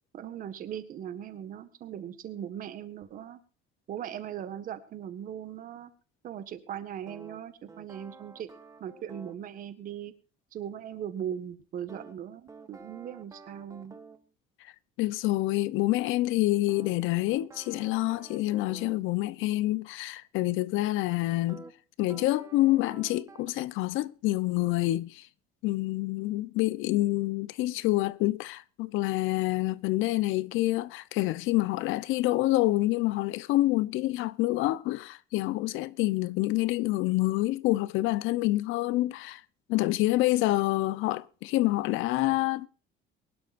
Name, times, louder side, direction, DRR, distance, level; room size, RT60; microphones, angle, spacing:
voice 1, 0.1-3.4 3.9-5.9 6.2-8.5 8.8-10.1 10.5-14.0, right 9 dB, 40° right, 1.7 m, -39 dB
sound 1, 7.1-9.4 11.9-14.3 16.7-19.0 21.5-21.7 22.1-23.5, right 3 dB, 15° right, 1.2 m, -49 dB
voice 2, 15.0-21.6 22.0-25.3 25.6-39.4 39.7-42.7, left 17 dB, 70° left, 0.9 m, -27 dB
23.0 x 12.0 x 2.6 m
cardioid pair, 170°, 21 cm